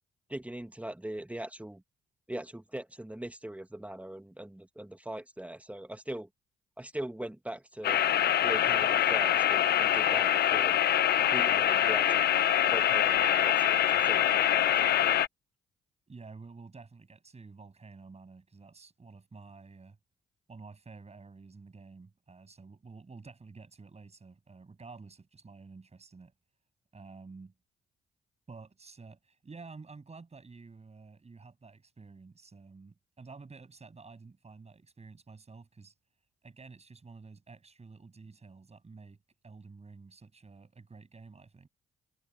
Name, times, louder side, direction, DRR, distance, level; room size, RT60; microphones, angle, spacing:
voice 1, 0.3-1.8 2.3-6.3 6.8-8.0 8.4-10.8 11.3-12.3 12.7-15.2, right 1 dB, 10° right, 2.1 m, -41 dB
sound 1, 7.8-15.3, left 11 dB, 60° left, 0.8 m, -25 dB
voice 2, 16.1-20.0 20.5-26.3 26.9-27.5 28.5-36.0 36.4-39.2 39.4-41.7, right 4 dB, 35° right, 7.6 m, -50 dB
hypercardioid pair, 50°, 18 cm